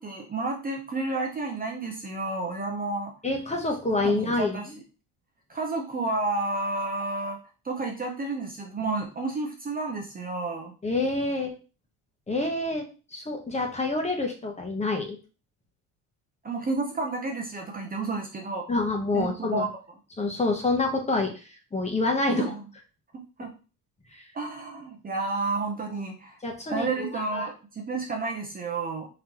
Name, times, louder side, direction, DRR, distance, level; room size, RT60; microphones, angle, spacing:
voice 1, 0.0-3.1 4.0-4.7 5.5-7.4 7.6-10.7 16.4-18.7 19.1-19.7 22.3-22.5 23.4-23.5 24.3-26.4 26.7-29.1, right 3 dB, 25° right, 1 dB, 0.7 m, -31 dB
voice 2, 3.2-4.6 10.8-11.5 12.3-12.8 13.1-15.2 18.7-19.7 20.2-22.5 24.1-24.2 26.4-27.5, left 2 dB, 20° left, 2 dB, 1.0 m, -27 dB
3.9 x 3.1 x 3.0 m, 0.34 s
cardioid pair, 105°, 36 cm